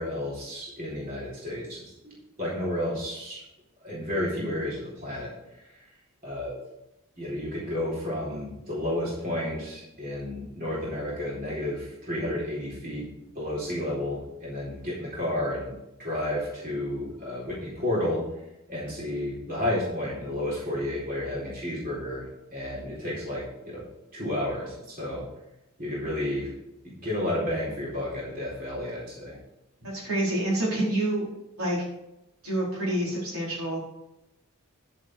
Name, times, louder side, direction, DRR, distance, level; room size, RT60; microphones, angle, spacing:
voice 1, 0.0-3.4 3.8-5.9 6.2-6.6 7.2-13.1 13.3-15.7 16.0-18.2 18.7-23.8 24.1-25.2 25.8-26.5 26.8-29.4, left 1 dB, 40° right, -6 dB, 4.2 m, -31 dB
voice 2, 29.8-31.3 31.6-31.8 32.4-33.8, right 1 dB, 75° right, -5 dB, 4.6 m, -27 dB
11.0 x 7.5 x 4.7 m, 0.89 s
head